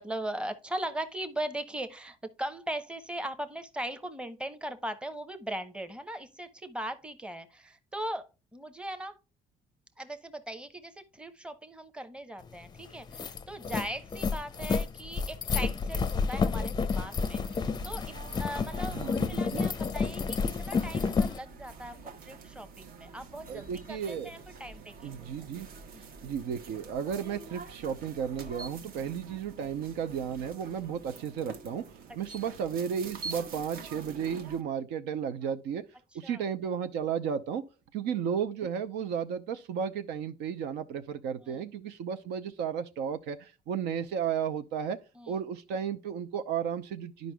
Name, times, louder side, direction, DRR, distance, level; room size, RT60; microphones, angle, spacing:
voice 1, 0.0-9.2 10.0-18.1 18.4-25.3 25.9-26.1 32.3-32.5 35.4-35.5 36.2-36.4 41.4-41.6 45.2-45.3, right 1 dB, 5° right, 0.8 m, -39 dB
sound 1, 12.5-12.6 12.9-21.4, left 5 dB, 25° left, 0.5 m, -30 dB
sound 2, 16.9-34.6, right 4 dB, 60° right, 0.9 m, -47 dB
voice 2, 18.9-19.7 23.5-24.3 25.0-25.7 26.2-35.8 36.1-37.7 37.9-45.0 45.3-47.3, right 7 dB, 85° right, 0.7 m, -34 dB
11.0 x 5.1 x 2.2 m
cardioid pair, 110°, 17 cm